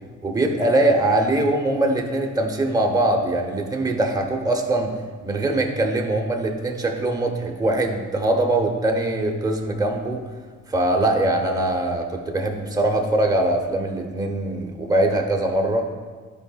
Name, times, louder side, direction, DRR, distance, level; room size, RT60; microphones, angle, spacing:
voice 1, 0.2-4.9 5.2-10.2 10.7-15.9, right 1 dB, 10° right, 1 dB, 0.9 m, -22 dB
11.5 x 4.9 x 2.4 m, 1.5 s
cardioid pair, 90°, 30 cm